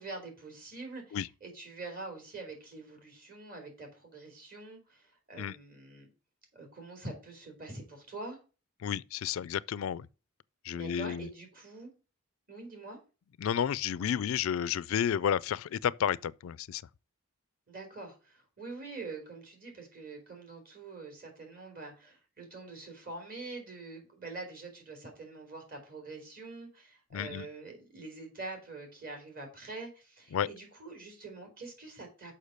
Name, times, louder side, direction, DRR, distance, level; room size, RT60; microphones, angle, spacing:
voice 1, 0.0-6.1 6.5-8.4 10.7-11.9 12.5-13.0 17.7-32.3, right 3 dB, 45° right, 3.4 m, -45 dB
voice 2, 8.8-10.1 10.6-11.3 13.4-16.8 27.1-27.5 30.3-30.5, left 8 dB, 70° left, 0.3 m, -31 dB
6.6 x 5.6 x 6.5 m
head